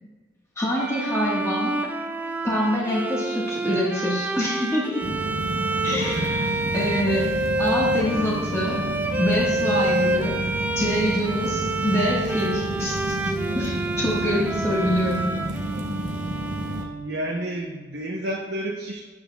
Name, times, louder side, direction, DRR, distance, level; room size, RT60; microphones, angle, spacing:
voice 1, 0.6-1.8 2.4-5.1 5.8-6.5 6.7-7.3 7.6-8.8 9.2-10.4 10.7-13.2 13.5-15.3, equal, 15° left, -4 dB, 1.3 m, -25 dB
Bowed string instrument, 0.8-17.3, right 1 dB, 10° right, 0.3 m, -28 dB
sound 1, 5.0-16.8, right 1 dB, 40° right, 0.7 m, -30 dB
voice 2, 6.0-6.4 16.8-19.0, right 1 dB, 80° right, -1 dB, 0.7 m, -31 dB
8.7 x 8.0 x 2.2 m, 1.3 s
head